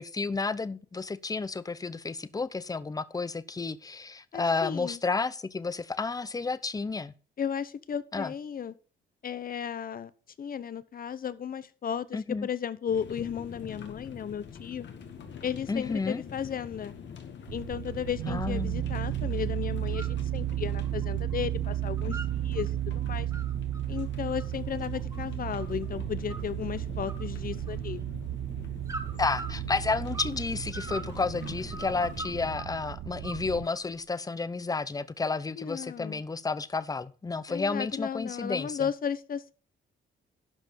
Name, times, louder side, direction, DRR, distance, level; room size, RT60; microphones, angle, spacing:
voice 1, 0.0-7.1 8.1-8.3 12.1-12.5 15.7-16.2 18.3-18.8 29.2-38.9, left 4 dB, 20° left, 0.7 m, -31 dB
voice 2, 4.3-5.0 7.4-8.7 9.2-10.1 10.4-14.9 15.4-16.9 17.5-23.3 23.9-28.0 35.6-36.2 37.5-39.5, left 8 dB, 45° left, 0.9 m, -34 dB
sound 1, 12.9-32.5, left 7 dB, 65° left, 1.9 m, -45 dB
sound 2, 17.5-33.7, right 13 dB, 75° right, 0.7 m, -34 dB
sound 3, 19.8-20.2 20.5-21.5 21.7-22.7 23.1-25.9 26.3-26.8 27.1-28.0 28.9-30.4 30.7-32.8 33.2-34.0, right 2 dB, 15° right, 2.1 m, -43 dB
12.0 x 5.2 x 5.5 m
cardioid pair, 90°, 20 cm